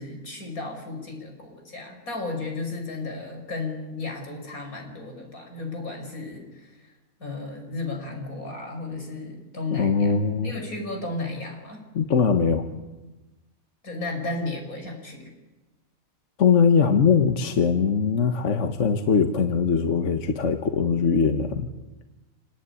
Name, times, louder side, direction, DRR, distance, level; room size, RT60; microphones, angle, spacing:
voice 1, 0.0-6.9 7.2-11.8 13.8-15.3, left 3 dB, 90° left, 3 dB, 6.0 m, -34 dB
voice 2, 9.7-10.5 11.9-12.7 16.4-21.7, left 6 dB, 60° left, 7 dB, 1.6 m, -21 dB
27.0 x 19.0 x 9.9 m, 1.1 s
omnidirectional pair, 1.5 m